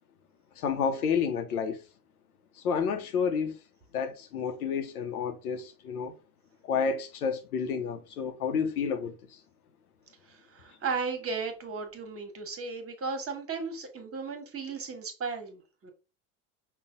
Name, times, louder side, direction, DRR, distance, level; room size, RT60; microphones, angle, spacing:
voice 1, 0.6-1.8 2.6-3.6 3.9-6.1 6.6-9.4, left 6 dB, 80° left, 0.8 m, -30 dB
voice 2, 10.3-15.9, right 4 dB, 30° right, 1.4 m, -35 dB
5.4 x 2.4 x 3.7 m
figure-of-eight pair, 70°, 44 cm